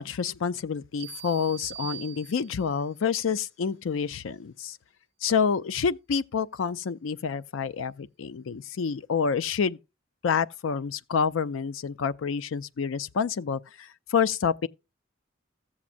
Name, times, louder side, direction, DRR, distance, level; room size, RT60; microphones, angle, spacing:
voice 1, 0.0-4.8 5.2-9.8 10.2-14.7, left 6 dB, 80° left, 0.4 m, -28 dB
sound 1, 1.0-2.8, right 13 dB, 35° right, 0.6 m, -42 dB
14.5 x 7.3 x 2.5 m
head